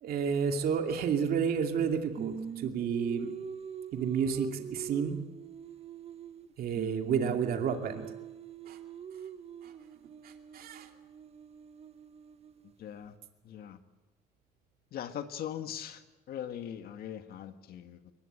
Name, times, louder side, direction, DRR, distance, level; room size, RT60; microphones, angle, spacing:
voice 1, 0.0-3.3 3.9-5.2 6.6-8.1 8.7-8.8 9.6-9.7 10.2-10.9, right 7 dB, 65° right, 4 dB, 2.5 m, -31 dB
Singing, 2.2-6.5 6.7-12.7, right 7 dB, 35° right, 1.1 m, -43 dB
voice 2, 12.8-13.1 13.4-13.8 14.9-16.0 16.3-18.1, left 10 dB, 65° left, 8 dB, 1.9 m, -40 dB
22.5 x 20.5 x 8.9 m, 1.1 s
cardioid pair, 110°, 17 cm